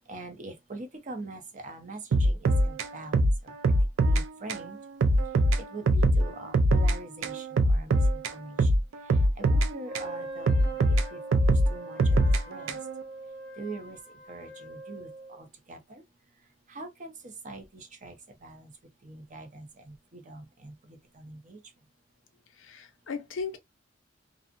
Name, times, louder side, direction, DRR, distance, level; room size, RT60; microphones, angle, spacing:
voice 1, 0.1-3.5 4.0-4.8 5.7-8.7 9.4-10.6 10.9-11.4 11.7-12.8 13.6-14.0 14.3-15.1 15.4-16.0 16.7-17.1 17.4-18.2 18.4-18.7 19.0-21.6, right 2 dB, 40° right, 0.6 m, -43 dB
sound 1, 2.1-4.2 4.5-4.7 5.0-7.0 7.2-10.1 10.5-13.0, right 1 dB, 85° right, 0.4 m, -23 dB
Wind instrument woodwind instrument, 9.8-15.4, right 1 dB, 5° left, 0.9 m, -43 dB
voice 2, 22.6-23.6, left 5 dB, 85° left, 0.5 m, -36 dB
2.5 x 2.0 x 2.4 m
head